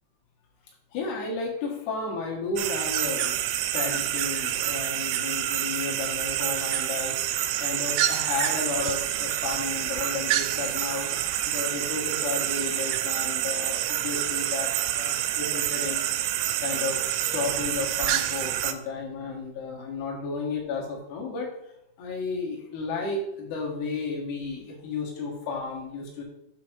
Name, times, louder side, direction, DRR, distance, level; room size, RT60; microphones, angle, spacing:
voice 1, 0.9-3.4 3.7-7.2 7.6-11.1 11.5-16.0 16.6-17.0 17.3-21.5 22.0-26.2, left 4 dB, 70° left, -2 dB, 3.4 m, -33 dB
sound 1, 2.6-18.7, right 12 dB, 85° right, 2.8 m, -27 dB
7.6 x 3.1 x 6.2 m, 0.83 s
omnidirectional pair, 5.2 m